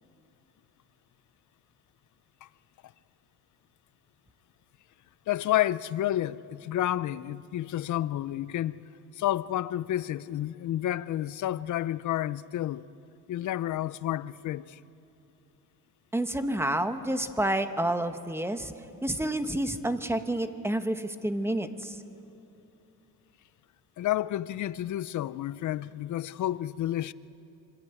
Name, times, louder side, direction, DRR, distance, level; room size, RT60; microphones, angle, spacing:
voice 1, 5.3-8.8 9.2-12.8 13.3-14.8 24.0-27.1, left 13 dB, 55° left, 0.7 m, -30 dB
voice 2, 16.1-18.7 19.0-22.0, right 1 dB, 5° right, 1.2 m, -29 dB
25.5 x 25.0 x 9.1 m
cardioid pair, 130°, 35 cm